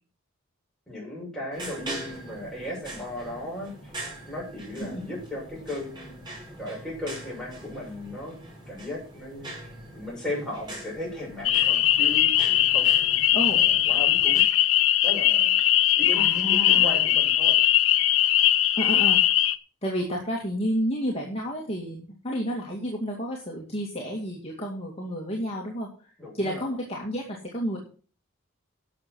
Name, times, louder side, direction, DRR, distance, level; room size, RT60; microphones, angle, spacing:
voice 1, 0.9-6.3 6.6-8.4 8.7-14.5 15.0-15.6 16.0-17.6 26.2-26.7, left 1 dB, 5° left, -4 dB, 6.9 m, -36 dB
sound 1, 1.5-14.4, right 1 dB, 20° right, 5.2 m, -42 dB
sound 2, 11.4-19.6, left 12 dB, 75° left, 0.8 m, -20 dB
voice 2, 13.3-13.6 16.1-17.1 18.8-19.2 19.8-27.8, equal, 30° left, -2 dB, 2.3 m, -31 dB
11.5 x 7.2 x 6.2 m, 0.39 s
head